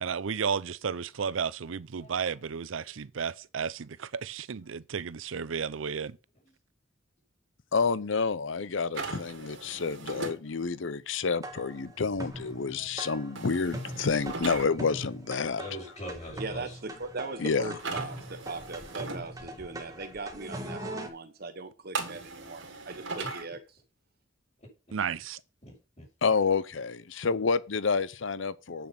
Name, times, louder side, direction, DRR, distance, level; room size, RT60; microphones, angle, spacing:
voice 1, 0.0-6.2 24.9-25.4, right 6 dB, 90° right, 0.6 m, -33 dB
voice 2, 7.7-15.6 17.4-17.7 26.2-28.9, left 4 dB, 75° left, 0.7 m, -29 dB
sound 1, 8.9-10.4 13.4-14.7 17.8-19.2 21.9-23.4, right 3 dB, 70° right, 2.6 m, -38 dB
sound 2, 11.4-21.1, right 1 dB, 20° right, 1.6 m, -42 dB
voice 3, 12.6-12.9 13.3-13.4 15.6-16.8 25.6-26.0, equal, 35° left, 6.3 m, -43 dB
voice 4, 16.4-23.6, right 3 dB, 55° right, 1.1 m, -39 dB
8.5 x 7.0 x 5.9 m
head